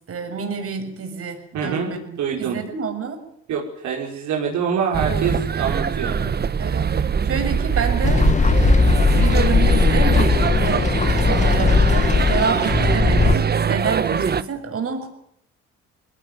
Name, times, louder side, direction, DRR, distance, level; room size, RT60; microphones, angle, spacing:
voice 1, 0.1-3.2 6.6-8.8 9.2-15.1, right 5 dB, 50° right, 5 dB, 6.8 m, -28 dB
voice 2, 1.5-2.6 3.5-6.3, right 6 dB, 70° right, -2 dB, 5.4 m, -25 dB
sound 1, 4.9-14.4, right 7 dB, 35° right, 1.2 m, -22 dB
sound 2, 8.0-13.4, left 4 dB, 25° left, 1.2 m, -18 dB
22.0 x 18.0 x 9.4 m, 0.71 s
cardioid pair, 85°, 30 cm